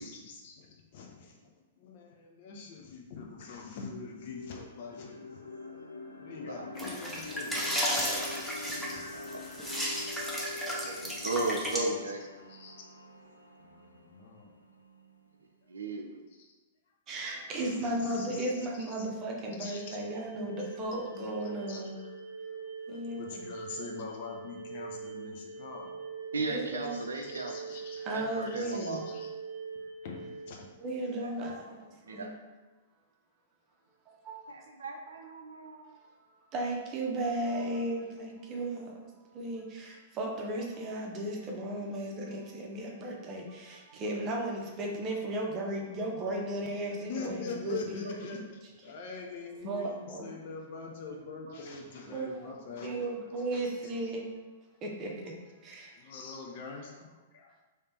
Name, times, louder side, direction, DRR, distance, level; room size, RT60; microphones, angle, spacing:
voice 1, 0.0-1.5 1.8-5.2 6.2-7.7 8.1-11.1 12.5-12.7 13.6-14.5 16.4-16.5 17.5-18.5 19.6-20.0 21.7-21.8 23.1-26.1 27.1-28.0 28.5-29.3 30.0-30.7 46.8-48.4 48.8-53.1 55.9-57.1 57.3-57.5, left 4 dB, 50° left, 0 dB, 0.8 m, -44 dB
sound 1, 2.8-2.9 3.4-15.4, left 2 dB, 85° left, 0.5 m, -46 dB
voice 2, 6.4-7.1 9.1-9.4 10.6-12.3 15.7-16.2 26.3-27.8 28.1-29.0 31.2-31.7 32.0-32.3 34.8-35.8 48.0-48.1 51.0-51.7 52.0-52.1 52.8-52.9 53.3-53.4 56.4-56.5 56.8-57.0, right 2 dB, 75° right, 3 dB, 0.5 m, -37 dB
sound 2, 6.8-11.8, equal, ahead, 0.8 m, -34 dB
voice 3, 17.1-22.0 22.9-23.5 23.8-23.9 26.5-27.0 28.0-29.1 30.8-32.3 34.2-34.4 36.5-48.4 48.8-48.9 49.6-50.3 52.1-54.2 54.8-55.3 55.6-55.9, right 1 dB, 30° right, -1 dB, 0.9 m, -35 dB
sound 3, 19.7-30.6, right 4 dB, 50° right, 1.0 m, -43 dB
3.3 x 3.3 x 4.3 m, 1.2 s
figure-of-eight pair, 105°, 0 cm